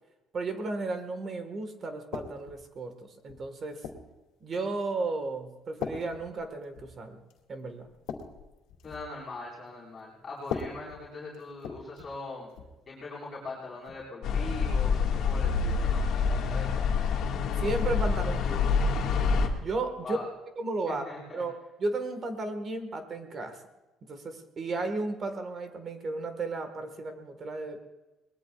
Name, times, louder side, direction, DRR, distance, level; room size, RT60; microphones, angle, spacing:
voice 1, 0.3-3.8 4.4-7.2 7.5-7.9 17.6-18.8 19.6-20.2 20.6-21.0 21.3-23.6 24.1-27.8, right 3 dB, 35° right, 7 dB, 1.5 m, -34 dB
sound 1, 2.1-2.6 3.3-4.2 4.8-5.1 5.8-7.0 7.3-7.5 7.8-9.1 10.4-12.2 12.5-12.8 13.9-14.0, left 6 dB, 85° left, 2.3 m, -40 dB
voice 2, 8.8-12.5 12.9-16.0 16.3-17.0 20.0-20.3 20.9-21.4, left 3 dB, 25° left, -6 dB, 4.4 m, -41 dB
sound 2, 14.2-19.5, left 5 dB, 60° left, 1.8 m, -27 dB
23.0 x 20.0 x 2.4 m, 1.1 s
cardioid pair, 150°, 0 cm